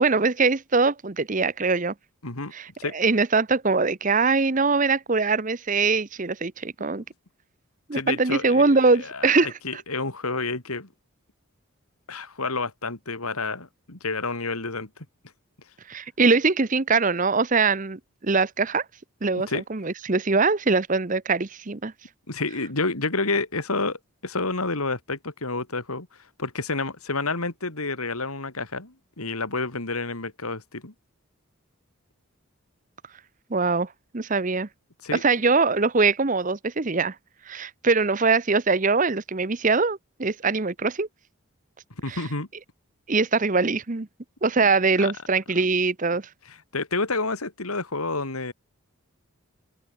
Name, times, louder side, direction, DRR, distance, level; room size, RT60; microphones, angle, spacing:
voice 1, 0.0-1.9 2.5-7.0 7.9-9.8 15.9-18.8 19.2-21.9 33.5-33.9 34.1-34.7 35.2-37.1 37.5-41.1 42.1-42.2 43.1-44.1 44.4-46.2, right 4 dB, 35° right, 0.8 m, -22 dB
voice 2, 7.9-10.9 12.1-14.9 19.5-19.6 22.3-26.1 26.4-30.9 35.0-35.2 42.0-42.5 45.0-45.1 46.5-48.5, left 3 dB, 90° left, 3.6 m, -29 dB
open air
head